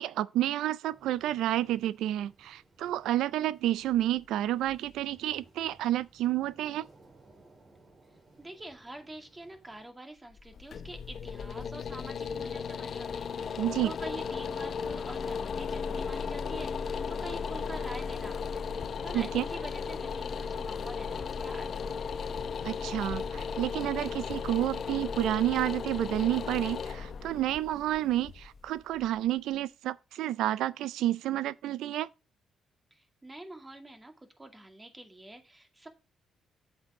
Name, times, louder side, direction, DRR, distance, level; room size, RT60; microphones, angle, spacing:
voice 1, 0.0-6.8 13.6-13.9 19.1-19.4 22.6-32.1, right 13 dB, 85° right, 0.4 m, -30 dB
sound 1, 0.9-9.9, right 2 dB, 45° right, 4.4 m, -61 dB
voice 2, 8.4-22.2 32.9-35.9, right 1 dB, 15° right, 2.0 m, -46 dB
sound 2, 10.3-29.3, left 6 dB, 55° left, 0.8 m, -36 dB
7.8 x 6.3 x 4.8 m
cardioid pair, 90°, 0 cm